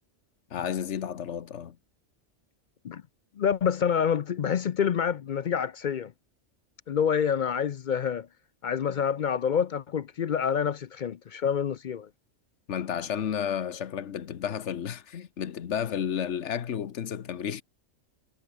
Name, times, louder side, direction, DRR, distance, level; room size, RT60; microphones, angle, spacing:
voice 1, 0.5-1.8 12.7-17.6, left 8 dB, 70° left, 1.3 m, -32 dB
voice 2, 3.4-6.1 6.9-8.3 8.6-12.1, left 7 dB, 55° left, 0.6 m, -27 dB
omnidirectional pair, 1.3 m